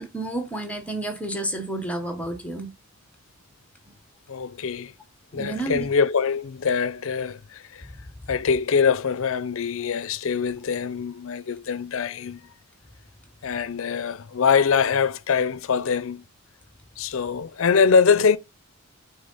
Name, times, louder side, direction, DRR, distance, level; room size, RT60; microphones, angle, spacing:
voice 1, 0.0-2.7 5.3-5.9, right 2 dB, 5° left, 0.9 m, -30 dB
voice 2, 4.3-4.9 5.3-7.9 8.3-12.5 13.4-16.3 17.0-18.4, left 6 dB, 65° left, 0.5 m, -23 dB
8.9 x 3.7 x 4.0 m
head